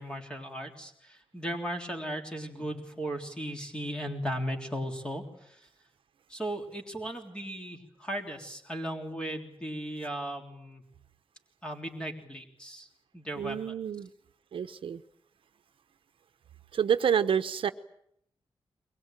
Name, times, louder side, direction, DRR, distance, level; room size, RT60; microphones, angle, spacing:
voice 1, 0.0-5.7 6.3-10.8 11.6-12.9 13.1-13.6, right 1 dB, 10° left, 3.4 m, -36 dB
voice 2, 13.4-14.1 14.5-15.0 16.7-17.7, right 8 dB, 70° right, 1.0 m, -28 dB
23.5 x 21.0 x 9.1 m
wide cardioid pair, 165°, 9 cm